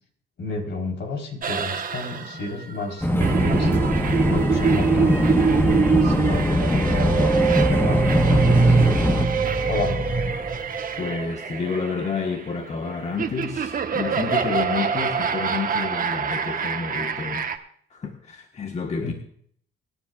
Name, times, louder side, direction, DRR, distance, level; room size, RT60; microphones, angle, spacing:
voice 1, 0.4-3.7 4.3-5.2 5.6-9.0 9.7-10.2 19.0-19.1, left 2 dB, 65° left, 2 dB, 3.9 m, -32 dB
sound 1, 1.4-17.6, right 6 dB, 45° right, 1.2 m, -26 dB
sound 2, 3.0-9.3, left 1 dB, 10° left, 1.1 m, -21 dB
sound 3, 6.8-11.4, right 4 dB, 20° right, 1.5 m, -23 dB
voice 2, 11.0-17.5 17.9-19.1, left 5 dB, 35° left, 3 dB, 1.3 m, -29 dB
23.0 x 10.0 x 2.4 m, 0.62 s
cardioid pair, 90°, 20 cm